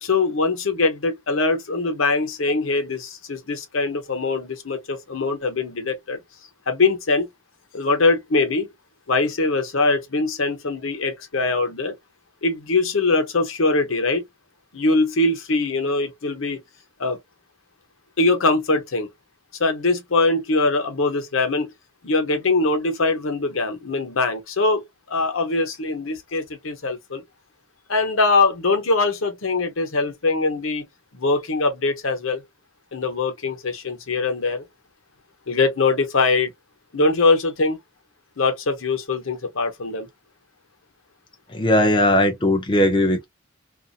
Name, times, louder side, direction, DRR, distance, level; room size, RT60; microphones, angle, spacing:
voice 1, 0.0-6.2 6.7-7.3 7.7-8.7 9.1-11.9 12.4-14.2 14.7-16.6 17.0-17.2 18.2-19.1 19.6-21.7 22.0-24.8 25.1-27.2 27.9-30.9 31.1-32.4 32.9-34.6 35.5-36.5 36.9-37.8 38.4-40.1, left 3 dB, 75° left, 0.9 m, -22 dB
voice 2, 41.5-43.3, left 1 dB, 25° left, 0.5 m, -18 dB
2.6 x 2.5 x 2.4 m
head